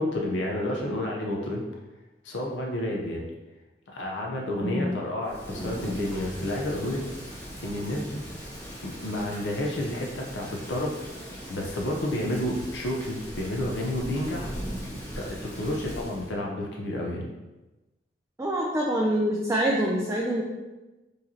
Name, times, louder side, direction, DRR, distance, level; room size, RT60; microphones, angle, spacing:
voice 1, 0.0-1.6 2.2-3.3 3.9-7.1 7.6-8.2 8.8-11.0 11.5-14.6 15.1-17.3, left 1 dB, 85° left, -1 dB, 0.6 m, -30 dB
voice 2, 4.6-5.0 18.4-20.4, equal, 15° right, -3 dB, 0.4 m, -25 dB
Thunder / Rain, 5.2-16.3, equal, 15° left, 1.1 m, -39 dB
4.8 x 3.1 x 2.7 m, 1.1 s
head